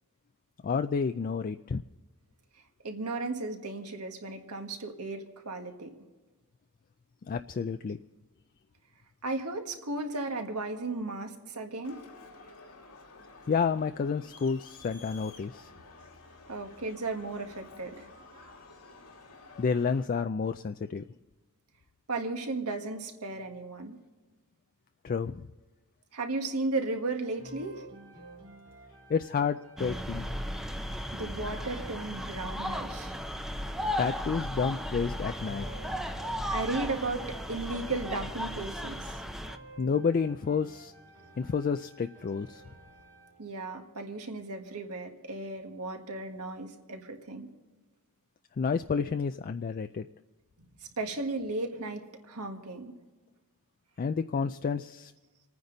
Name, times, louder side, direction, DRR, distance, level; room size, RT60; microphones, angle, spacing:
voice 1, 0.6-1.8 7.3-8.0 13.5-15.7 19.6-21.0 25.0-25.4 29.1-30.3 34.0-35.6 39.8-40.9 41.4-42.6 48.6-50.1 54.0-55.1, left 5 dB, 40° left, 9 dB, 0.3 m, -30 dB
voice 2, 2.8-5.9 9.2-12.0 16.5-18.1 22.1-24.0 26.1-27.8 31.1-33.1 36.5-39.2 43.4-47.5 50.6-52.9, right 3 dB, 85° right, 4 dB, 1.6 m, -35 dB
Crowd, 11.8-20.0, left 3 dB, 80° left, 2.2 m, -52 dB
sound 1, 27.4-43.4, right 2 dB, 35° right, 2.1 m, -52 dB
sound 2, 29.8-39.6, equal, ahead, 0.6 m, -35 dB
28.0 x 9.5 x 3.9 m, 1.2 s
head